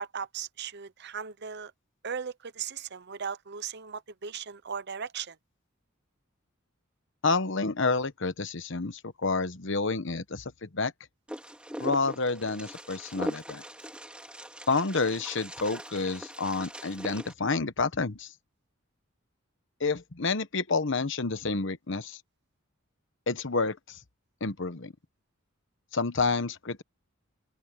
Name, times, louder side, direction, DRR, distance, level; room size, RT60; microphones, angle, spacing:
voice 1, 0.0-1.7 2.0-5.4, right 6 dB, 50° right, 0.9 m, -37 dB
voice 2, 7.2-10.9 11.8-13.6 14.7-18.3 19.8-22.2 23.3-24.0 24.4-24.9 25.9-26.8, left 3 dB, 60° left, 1.1 m, -29 dB
Wind, 11.3-17.3, equal, 5° right, 2.3 m, -40 dB
open air
head